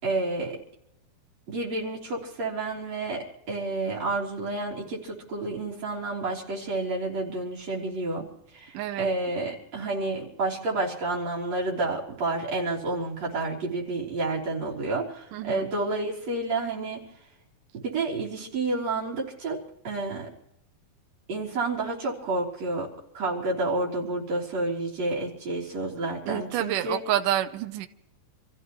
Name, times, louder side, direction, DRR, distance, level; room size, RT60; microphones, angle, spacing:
voice 1, 0.0-0.6 1.5-17.1 17.7-20.3 21.3-27.1, right 2 dB, 45° right, -4 dB, 4.5 m, -30 dB
voice 2, 8.7-9.1 15.3-15.7 26.3-27.9, right 12 dB, 75° right, 7 dB, 2.1 m, -28 dB
28.5 x 15.0 x 3.1 m, 0.82 s
omnidirectional pair, 4.5 m